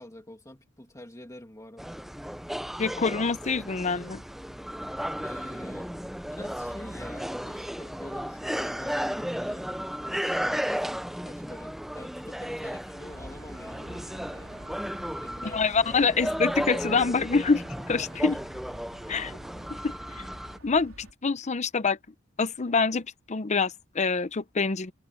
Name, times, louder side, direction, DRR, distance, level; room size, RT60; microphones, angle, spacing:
voice 1, 0.0-2.0 5.2-5.9 6.3-14.5 15.2-16.5 18.1-18.4, left 1 dB, 15° left, 2.6 m, -45 dB
sound 1, 1.8-20.6, equal, ahead, 0.6 m, -34 dB
voice 2, 2.8-4.2 15.4-18.4 19.1-19.4 19.8-20.2 20.6-22.0 22.4-24.9, left 4 dB, 35° left, 0.7 m, -26 dB
sound 2, 13.1-21.1, right 1 dB, 85° right, 4.1 m, -48 dB
head